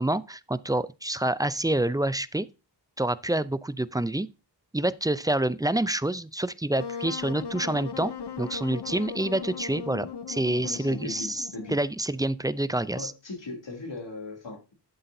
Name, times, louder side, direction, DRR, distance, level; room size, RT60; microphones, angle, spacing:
voice 1, 0.0-2.5 3.0-4.3 4.7-8.1 8.4-11.4 11.7-13.1, right 1 dB, 10° right, 0.4 m, -27 dB
Wind instrument woodwind instrument, 6.8-11.9, left 6 dB, 65° left, 0.7 m, -38 dB
voice 2, 10.6-11.8 12.9-14.7, left 2 dB, 85° left, 2.9 m, -38 dB
12.0 x 8.0 x 2.7 m
wide cardioid pair, 75°, 43 cm